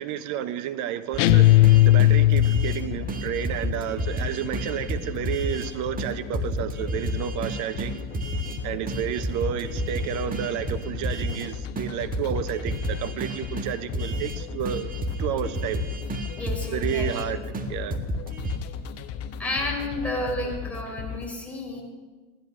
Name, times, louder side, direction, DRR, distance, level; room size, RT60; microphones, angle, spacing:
voice 1, 0.0-8.0 8.6-14.9 15.2-15.8 16.7-18.0, right 10 dB, 45° right, 12 dB, 1.1 m, -31 dB
sound 1, 1.1-2.8 3.1-5.7 6.0-6.1 6.3-8.6 8.9-11.5 11.8-11.9 12.1-14.4 14.7-17.3 17.5-17.7 17.9-18.6, right 1 dB, 20° right, 1.7 m, -31 dB
sound 2, 1.2-2.9, left 17 dB, 65° left, 0.5 m, -16 dB
sound 3, 1.5-21.3, left 7 dB, 35° left, 1.1 m, -36 dB
voice 2, 16.4-17.3 19.4-21.8, left 1 dB, 5° left, -2 dB, 4.3 m, -31 dB
15.5 x 10.5 x 6.4 m, 1.3 s
hypercardioid pair, 100°, 41 cm